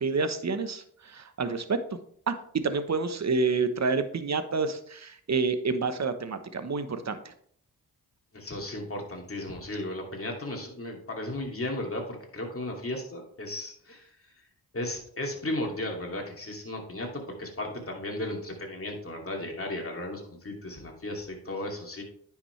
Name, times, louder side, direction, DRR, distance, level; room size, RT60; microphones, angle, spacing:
voice 1, 0.0-1.8 2.3-2.4 2.6-7.3, right 4 dB, 45° right, 10 dB, 1.1 m, -28 dB
voice 2, 8.3-14.1 14.7-22.0, left 1 dB, 35° left, 1 dB, 2.6 m, -35 dB
9.7 x 6.0 x 3.3 m, 0.63 s
cardioid pair, 60°, 38 cm